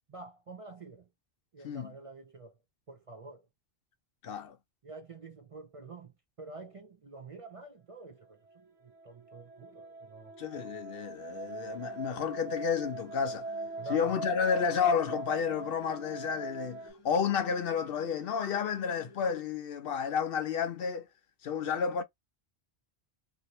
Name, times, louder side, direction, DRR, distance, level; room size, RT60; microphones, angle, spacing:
voice 1, 0.1-1.1 1.5-2.6 2.9-3.5 4.8-10.3 13.8-14.3, right 3 dB, 45° right, 0.5 m, -48 dB
voice 2, 4.2-4.6 10.4-13.5 13.9-21.1 21.4-22.0, left 6 dB, 65° left, 0.7 m, -31 dB
sound 1, 8.5-16.9, right 3 dB, 85° right, 1.1 m, -41 dB
sound 2, 11.1-19.4, left 2 dB, 25° left, 0.8 m, -55 dB
2.7 x 2.6 x 2.9 m
omnidirectional pair, 1.1 m